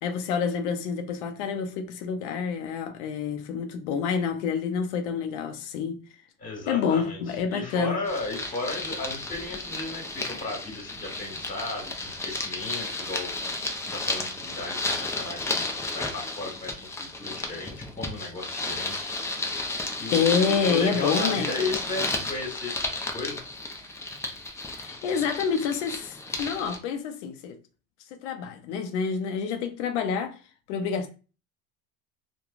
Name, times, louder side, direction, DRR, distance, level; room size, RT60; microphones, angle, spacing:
voice 1, 0.0-6.0 6.7-8.0 20.1-21.5 24.8-27.6 28.1-30.4 30.7-31.1, left 6 dB, 90° left, 0.5 m, -28 dB
voice 2, 6.4-13.3 13.8-19.1 20.0-23.4, left 3 dB, 25° left, 1.4 m, -35 dB
sound 1, 8.1-26.8, left 2 dB, 10° left, 0.4 m, -33 dB
3.0 x 2.2 x 2.4 m
supercardioid pair, 115°, 35 cm